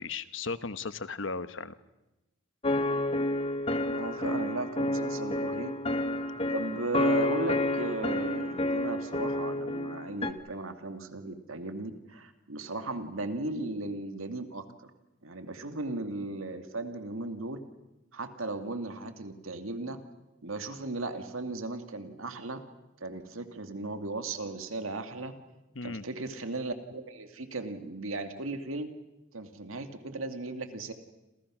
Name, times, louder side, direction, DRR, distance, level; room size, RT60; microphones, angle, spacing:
voice 1, 0.0-1.7 3.7-3.8 25.7-26.0, left 4 dB, 65° left, 13 dB, 1.2 m, -36 dB
sound 1, 2.6-10.3, left 1 dB, 30° left, 1.3 m, -30 dB
voice 2, 3.9-5.7 6.5-14.9 15.2-17.6 18.1-20.0 20.4-22.6 23.0-25.3 25.8-28.9 29.3-30.9, right 2 dB, 90° right, 7 dB, 2.1 m, -36 dB
28.0 x 27.5 x 6.2 m, 0.98 s
head